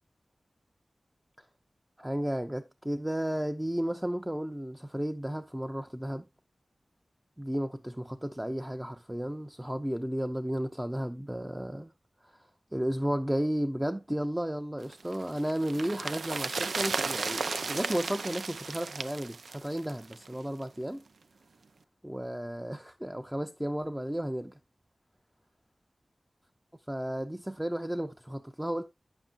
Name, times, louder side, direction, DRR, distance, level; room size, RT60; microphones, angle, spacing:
voice 1, 2.0-6.3 7.4-11.9 12.2-12.3 12.7-21.0 22.0-24.6 26.9-28.8, equal, 10° right, 0.6 m, -33 dB
sound 1, 14.9-20.3 20.6-20.7, right 4 dB, 85° right, 0.4 m, -35 dB
9.0 x 7.2 x 2.5 m
cardioid pair, 45°, 0 cm